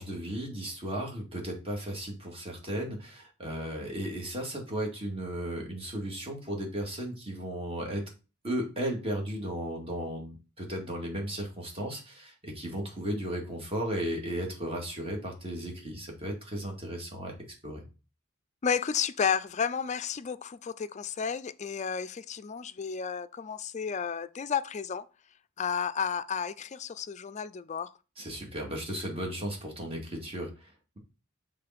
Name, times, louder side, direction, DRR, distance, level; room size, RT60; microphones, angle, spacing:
voice 1, 0.0-8.0 8.4-17.3 17.6-17.9 28.2-31.0, right 1 dB, 30° right, 2.0 m, -35 dB
voice 2, 18.6-25.0 25.6-27.9, left 6 dB, 35° left, 0.4 m, -32 dB
6.7 x 3.8 x 5.8 m
head